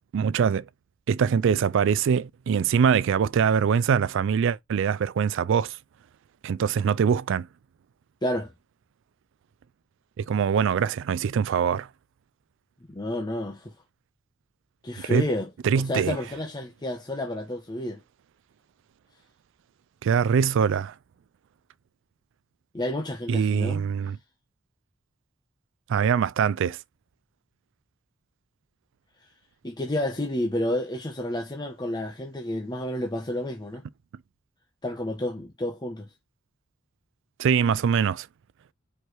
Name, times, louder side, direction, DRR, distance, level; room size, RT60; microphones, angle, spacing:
voice 1, 0.1-0.7 1.1-5.8 6.4-7.5 10.2-11.9 15.1-15.2 15.6-16.2 20.0-20.9 23.3-24.2 25.9-26.8 37.4-38.3, right 7 dB, 65° right, 0.3 m, -23 dB
voice 2, 8.2-8.5 12.9-13.7 14.8-15.5 15.7-18.0 22.7-23.9 29.6-33.8 34.8-36.1, left 1 dB, 20° left, 0.9 m, -30 dB
4.9 x 4.4 x 4.6 m
head